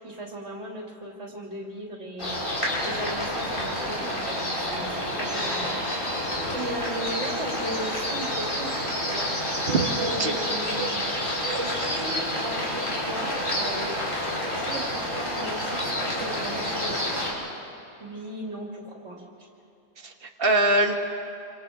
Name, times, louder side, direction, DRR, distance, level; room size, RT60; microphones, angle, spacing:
voice 1, 0.0-2.4 2.8-6.2 6.5-9.7 9.9-11.1 11.5-14.0 14.5-17.2 18.0-19.5, right 1 dB, 85° right, -2 dB, 3.1 m, -37 dB
sound 1, 2.2-17.3, equal, 50° left, 4.9 m, -29 dB
voice 2, 20.0-20.9, right 2 dB, 55° right, 3 dB, 1.7 m, -23 dB
28.0 x 26.5 x 3.7 m, 2.9 s
omnidirectional pair, 1.2 m